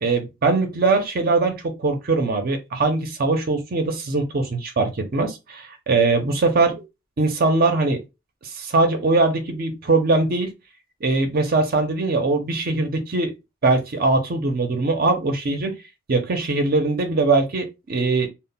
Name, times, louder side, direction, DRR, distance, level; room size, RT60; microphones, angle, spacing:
voice 1, 0.0-6.8 7.2-8.0 8.4-10.5 11.0-13.3 13.6-15.8 16.1-18.3, right 3 dB, 50° right, 0.5 m, -21 dB
2.1 x 2.0 x 3.7 m
head